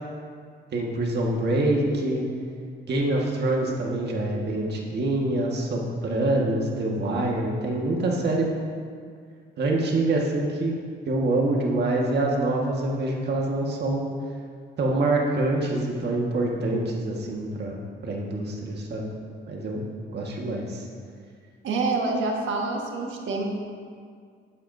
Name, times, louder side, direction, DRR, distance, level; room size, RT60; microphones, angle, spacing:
voice 1, 0.7-2.2 2.9-8.5 9.6-10.8 11.1-14.0 14.8-19.0 19.5-19.8 20.1-20.9, right 2 dB, 60° right, -1 dB, 1.7 m, -25 dB
voice 2, 21.6-23.4, right 3 dB, 75° right, 0 dB, 1.6 m, -26 dB
11.5 x 10.5 x 2.7 m, 2.1 s
cardioid pair, 90°, 20 cm